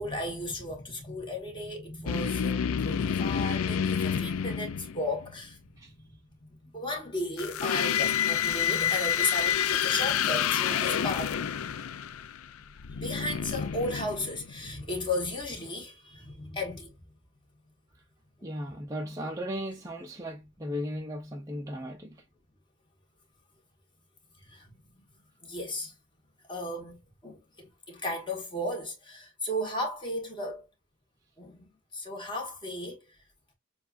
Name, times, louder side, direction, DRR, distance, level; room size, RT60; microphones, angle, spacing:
voice 1, 0.0-5.7 6.7-11.4 12.9-16.9 18.4-18.5 24.4-25.0 25.4-25.9 26.5-30.6 31.4-33.0, left 1 dB, 20° left, 1.5 m, -35 dB
sound 1, 2.1-5.3 7.4-14.7, left 8 dB, 80° left, 0.4 m, -29 dB
voice 2, 18.4-22.2, equal, 15° right, 0.5 m, -36 dB
6.8 x 2.4 x 2.5 m
head